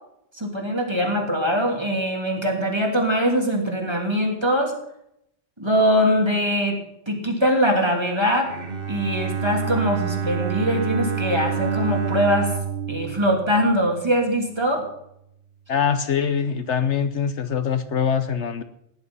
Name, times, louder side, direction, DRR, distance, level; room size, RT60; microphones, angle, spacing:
voice 1, 0.3-4.7 5.6-6.8 7.1-8.5 8.9-12.5 12.9-14.8, equal, 20° right, 1 dB, 3.0 m, -22 dB
Bowed string instrument, 8.4-14.4, right 7 dB, 50° right, 1.5 m, -28 dB
voice 2, 15.7-18.6, left 7 dB, 70° left, 11 dB, 1.1 m, -23 dB
17.0 x 11.0 x 5.5 m, 0.77 s
omnidirectional pair, 1.3 m